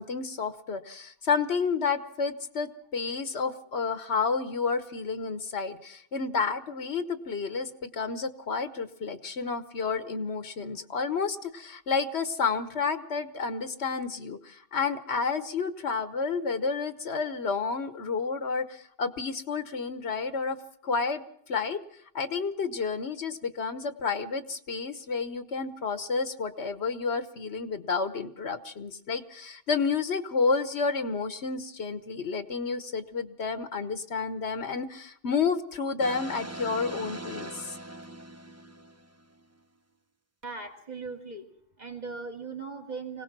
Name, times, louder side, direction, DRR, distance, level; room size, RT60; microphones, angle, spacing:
voice 1, 0.0-20.6 20.8-21.2 21.5-21.8 22.1-37.8, left 5 dB, 65° left, 10 dB, 1.3 m, -30 dB
sound 1, 36.0-39.4, right 1 dB, 15° right, 0.8 m, -41 dB
voice 2, 40.4-41.4 41.8-43.2, right 4 dB, 35° right, 3 dB, 2.5 m, -38 dB
25.0 x 18.0 x 6.0 m, 0.67 s
omnidirectional pair, 1.2 m